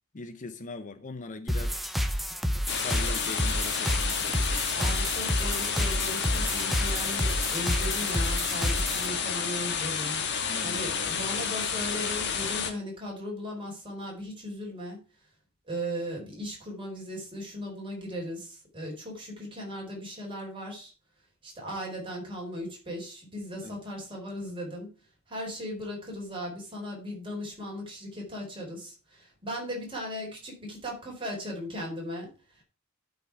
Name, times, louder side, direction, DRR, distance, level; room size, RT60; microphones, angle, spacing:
voice 1, 0.1-1.8 2.7-4.6 10.5-10.9 23.6-23.8, left 3 dB, 40° left, 0.7 m, -41 dB
sound 1, 1.5-9.1, equal, ahead, 0.8 m, -29 dB
sound 2, 2.7-12.7, left 6 dB, 55° left, 1.5 m, -30 dB
voice 2, 4.7-10.2 10.6-15.0 15.7-20.9 21.4-24.9 25.3-32.6, equal, 25° right, 4.3 m, -37 dB
12.0 x 5.4 x 4.7 m
head